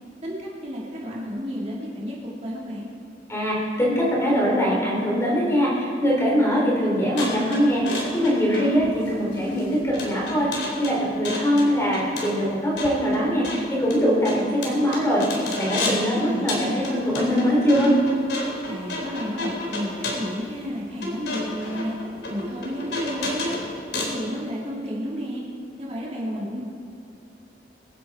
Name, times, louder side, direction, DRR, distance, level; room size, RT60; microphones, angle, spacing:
voice 1, 0.2-2.9 8.5-9.4 15.8-16.9 18.6-21.9 22.3-23.6 23.9-25.4 25.8-26.6, equal, 35° right, -5 dB, 2.8 m, -32 dB
voice 2, 3.3-17.9, equal, 15° left, -5 dB, 4.3 m, -22 dB
sound 1, 7.2-16.1 16.5-24.2, left 2 dB, 85° left, 3.9 m, -32 dB
24.5 x 10.5 x 4.5 m, 2.6 s
head